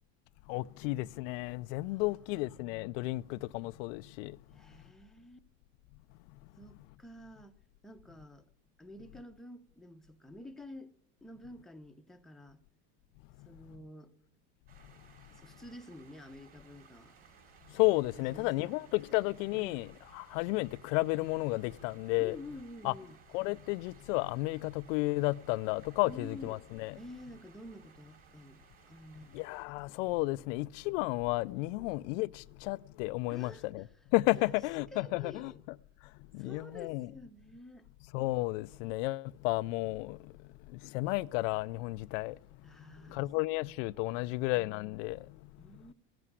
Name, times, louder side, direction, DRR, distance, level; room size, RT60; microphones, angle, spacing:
voice 1, 0.5-4.4 13.4-13.5 17.7-22.4 22.8-22.9 23.3-27.0 29.3-33.8 34.1-35.5 36.0-37.1 38.1-42.7 43.1-45.8, left 21 dB, 80° left, 0.5 m, -33 dB
voice 2, 2.0-2.6 4.5-5.4 6.6-7.5 7.8-8.5 8.8-10.9 11.2-12.6 13.4-14.1 15.3-17.1 18.2-18.7 19.1-19.2 22.2-23.2 26.0-26.6 27.0-29.4 31.7-31.9 33.3-33.7 34.4-34.5 34.9-35.6 36.4-37.9 42.6-43.3 45.6-45.9, left 1 dB, ahead, 0.8 m, -50 dB
sound 1, 14.7-29.7, right 5 dB, 35° right, 5.3 m, -61 dB
sound 2, 16.6-30.3, right 4 dB, 70° right, 5.3 m, -67 dB
16.0 x 7.7 x 9.7 m
supercardioid pair, 130°, 37 cm